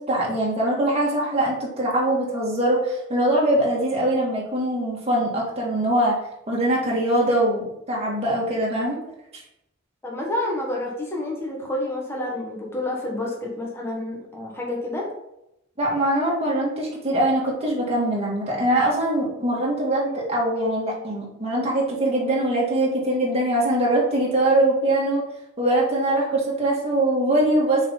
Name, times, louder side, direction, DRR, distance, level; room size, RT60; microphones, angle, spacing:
voice 1, 0.1-6.2 6.5-9.0 15.8-25.2 25.6-27.9, right 1 dB, 30° right, -4 dB, 1.9 m, -22 dB
voice 2, 10.0-15.1, left 1 dB, 10° left, -2 dB, 1.3 m, -29 dB
6.4 x 4.4 x 3.9 m, 0.83 s
head